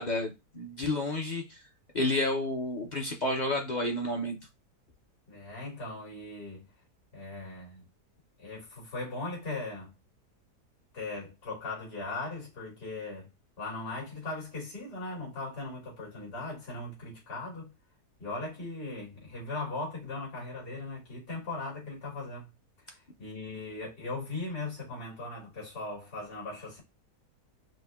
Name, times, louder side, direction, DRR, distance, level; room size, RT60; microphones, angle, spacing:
voice 1, 0.0-1.6 1.9-4.4, left 1 dB, 45° left, 0.6 m, -30 dB
voice 2, 5.3-6.6 7.1-7.9 8.4-9.9 10.9-13.3 13.6-17.7 18.2-22.5 22.8-26.8, left 2 dB, 70° left, 3.0 m, -39 dB
5.1 x 2.3 x 3.5 m
omnidirectional pair, 1.8 m